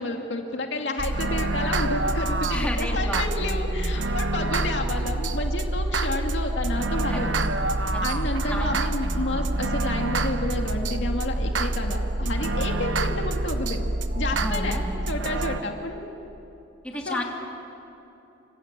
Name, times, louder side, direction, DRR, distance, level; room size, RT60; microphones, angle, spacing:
voice 1, 0.0-7.5 8.0-13.8 14.1-14.8 15.1-16.0 17.1-17.2, left 2 dB, 65° left, 2 dB, 2.4 m, -30 dB
sound 1, 1.0-15.6, right 2 dB, 75° right, 1.2 m, -26 dB
sound 2, 2.0-15.7, right 1 dB, 45° right, 2.7 m, -47 dB
voice 2, 2.5-4.0 7.1-7.3 7.9-8.1 8.4-9.2 14.3-14.8 16.8-17.2, left 1 dB, 5° left, -1 dB, 3.2 m, -33 dB
29.0 x 25.5 x 7.6 m, 3.0 s
head